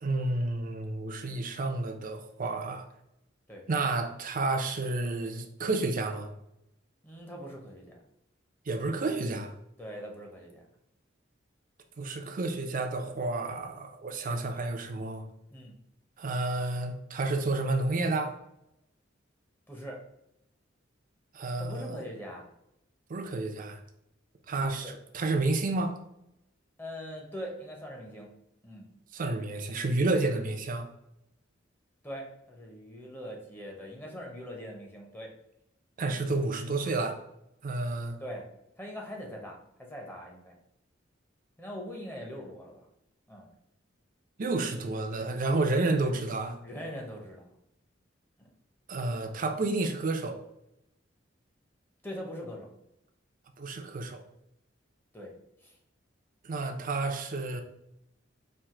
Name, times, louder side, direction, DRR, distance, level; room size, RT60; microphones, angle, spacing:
voice 1, 0.0-2.9 3.7-6.3 8.7-9.5 12.0-15.2 16.2-18.3 21.3-22.0 23.1-23.8 24.5-26.0 29.1-30.9 36.0-37.2 37.6-38.2 44.4-46.6 48.9-50.4 53.6-54.2 56.4-57.6, right 2 dB, 45° right, 0.5 m, -30 dB
voice 2, 7.0-8.0 9.8-10.7 15.5-15.8 19.7-20.0 21.6-22.5 24.8-24.9 26.8-28.3 28.6-28.9 32.0-35.3 38.2-38.4 38.8-40.6 41.6-42.9 43.3-43.5 46.6-47.5 48.4-48.5 52.0-52.7 55.1-55.3 55.6-55.8, equal, 10° left, 0.8 m, -42 dB
4.5 x 2.6 x 3.7 m
head